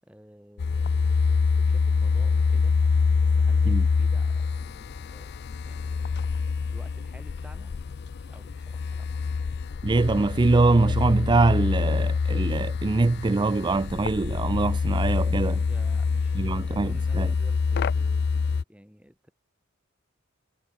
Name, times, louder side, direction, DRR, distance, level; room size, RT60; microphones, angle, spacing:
voice 1, 0.0-2.8 3.2-6.1 6.7-9.1 15.3-19.3, equal, 5° right, 6.7 m, -52 dB
sound 1, 0.6-18.6, left 5 dB, 50° left, 0.4 m, -25 dB
voice 2, 9.8-15.6 16.3-17.3, right 3 dB, 20° right, 0.4 m, -23 dB
head